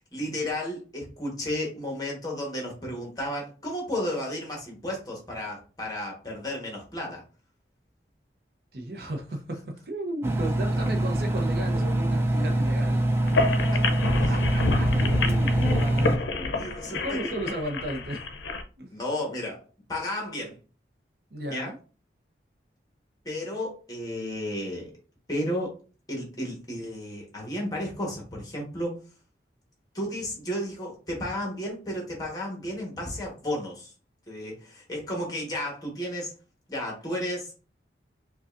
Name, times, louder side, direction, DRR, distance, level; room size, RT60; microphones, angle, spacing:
voice 1, 0.0-7.2 14.3-14.4 16.6-17.3 18.9-19.6 19.9-20.6 21.5-21.7 23.2-24.9 25.3-25.7 26.1-29.0 29.9-33.9 34.3-36.3 36.7-37.5, left 1 dB, 20° left, 1.2 m, -33 dB
voice 2, 8.7-13.0 14.3-18.2 18.8-18.9 21.3-21.8, right 1 dB, 55° right, 0.7 m, -35 dB
Engine, 10.2-16.2, right 1 dB, 15° right, 0.4 m, -24 dB
sound 1, 13.2-18.6, left 3 dB, 80° left, 0.5 m, -28 dB
5.1 x 2.3 x 2.5 m
head